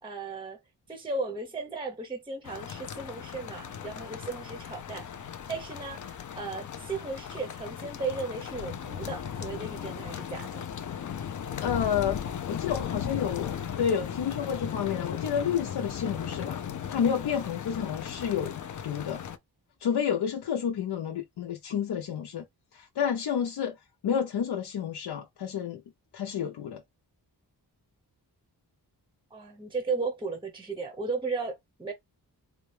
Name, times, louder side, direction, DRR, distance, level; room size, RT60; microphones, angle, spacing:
voice 1, 0.0-0.6 0.9-10.7 29.3-31.9, right 4 dB, 15° right, 0.6 m, -35 dB
sound 1, 2.5-19.4, left 8 dB, 50° left, 0.5 m, -37 dB
voice 2, 11.6-12.2 12.5-18.5 18.8-19.2 19.8-22.4 22.7-23.7 24.0-25.8 26.1-26.8, left 8 dB, 85° left, 0.7 m, -30 dB
4.1 x 2.2 x 3.2 m
wide cardioid pair, 175°, 39 cm